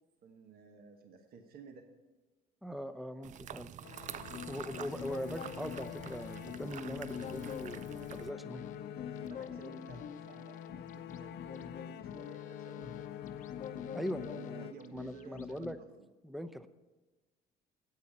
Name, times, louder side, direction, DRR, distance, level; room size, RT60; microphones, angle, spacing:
voice 1, 0.2-1.9 9.2-13.3 13.7-16.1, right 5 dB, 65° right, 5 dB, 1.2 m, -54 dB
voice 2, 2.6-3.7 4.5-8.6 13.9-14.6 14.9-15.8 16.2-16.7, equal, ahead, 10 dB, 0.6 m, -41 dB
sound 1, 3.2-8.3, right 10 dB, 45° right, 0.4 m, -47 dB
sound 2, 3.8-15.3, left 10 dB, 80° left, 0.7 m, -46 dB
sound 3, 4.1-15.7, left 8 dB, 50° left, 0.8 m, -47 dB
9.5 x 8.3 x 8.8 m, 1.2 s
cardioid pair, 110°, 17 cm